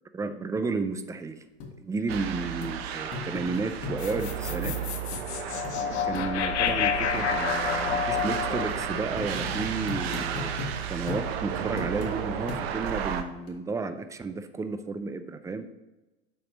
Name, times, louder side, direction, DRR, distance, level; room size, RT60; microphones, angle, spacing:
voice 1, 0.1-1.4 1.8-4.7 6.1-10.5 10.9-15.7, right 4 dB, 10° right, 10 dB, 0.4 m, -32 dB
sound 1, 1.6-1.7 2.1-2.2 2.6-2.7 3.1-4.2 4.6-4.8 5.1-5.2 5.6-5.8 6.1-6.3 6.7-6.8 7.2-7.3 7.7-7.8 8.2-8.3 8.7-8.8 9.2-10.7 11.1-11.3 11.8-12.1 12.5-12.9 13.5-13.6, left 4 dB, 50° left, 1.6 m, -37 dB
sound 2, 2.1-13.2, right 9 dB, 65° right, 0.8 m, -33 dB
sound 3, 4.0-10.3, left 9 dB, 80° left, 0.7 m, -30 dB
6.9 x 4.3 x 5.0 m, 1.1 s
hypercardioid pair, 95°, 33 cm